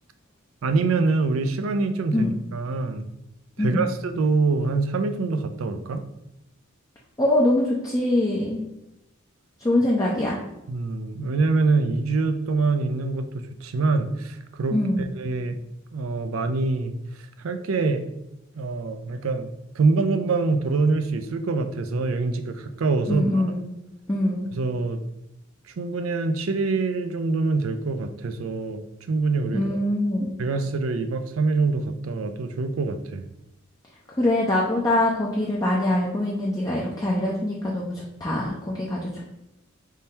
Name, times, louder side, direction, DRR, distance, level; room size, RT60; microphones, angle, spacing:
voice 1, 0.6-3.1 3.6-6.0 10.7-13.3 13.6-14.8 15.1-15.6 15.9-16.9 17.4-18.1 18.5-19.5 19.7-23.4 24.5-25.0 25.7-29.7 30.4-33.2, right 3 dB, 80° right, 8 dB, 0.4 m, -25 dB
voice 2, 3.6-3.9 7.2-8.6 9.6-10.4 14.7-15.1 23.1-23.7 24.1-24.5 29.5-30.4 34.2-39.2, left 1 dB, 15° left, -4 dB, 0.5 m, -23 dB
3.6 x 2.8 x 4.2 m, 0.90 s
head